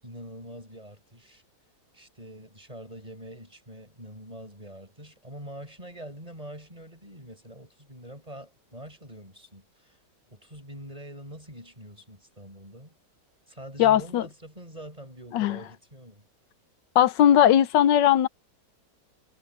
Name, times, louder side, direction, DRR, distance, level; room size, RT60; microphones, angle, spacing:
voice 1, 0.0-1.4 1.9-10.0 10.3-12.9 13.5-16.3, right 1 dB, 20° right, 7.1 m, -44 dB
voice 2, 13.8-14.2 15.3-15.6 16.9-18.3, left 11 dB, 90° left, 1.5 m, -19 dB
omnidirectional pair, 1.9 m